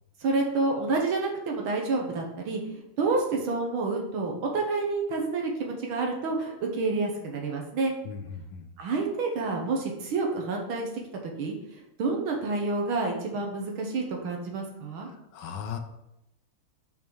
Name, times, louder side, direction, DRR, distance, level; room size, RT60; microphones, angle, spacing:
voice 1, 0.2-2.6 3.0-7.9 8.8-10.9 11.4-15.1, right 3 dB, 75° right, 1 dB, 2.0 m, -29 dB
voice 2, 8.0-8.7 15.3-15.8, left 7 dB, 75° left, 7 dB, 1.5 m, -37 dB
6.0 x 5.4 x 4.7 m, 0.87 s
omnidirectional pair, 2.3 m